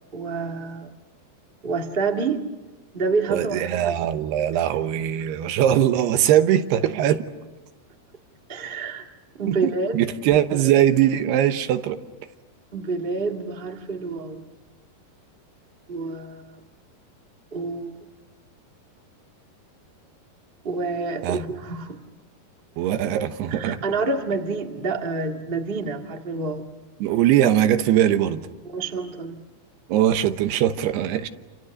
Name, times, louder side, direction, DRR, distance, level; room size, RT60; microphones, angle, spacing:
voice 1, 0.1-0.9 1.6-2.4 2.9-4.0 8.5-9.0 9.4-10.0 12.7-14.4 15.9-16.6 17.5-18.0 20.6-22.0 23.5-26.6 28.6-29.4, right 4 dB, 45° right, 3 dB, 0.7 m, -28 dB
voice 2, 3.3-7.3 9.5-12.0 21.2-21.4 22.8-23.8 27.0-28.5 29.9-31.3, right 11 dB, 85° right, 9 dB, 3.2 m, -21 dB
29.0 x 27.5 x 6.5 m, 1.2 s
omnidirectional pair, 4.6 m